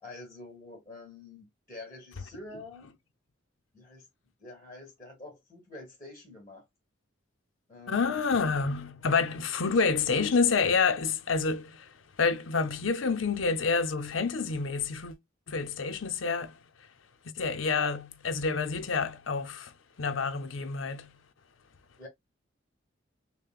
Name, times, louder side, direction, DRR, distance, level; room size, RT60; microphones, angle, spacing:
voice 1, 0.0-3.0 3.7-4.1 4.4-6.6 7.7-8.2 9.5-9.8 22.0-22.1, left 2 dB, 15° left, 1.7 m, -47 dB
voice 2, 7.9-11.9 12.2-15.2 15.5-16.5 17.4-19.7 20.0-21.2, left 4 dB, 75° left, 0.7 m, -28 dB
6.6 x 2.2 x 2.4 m
head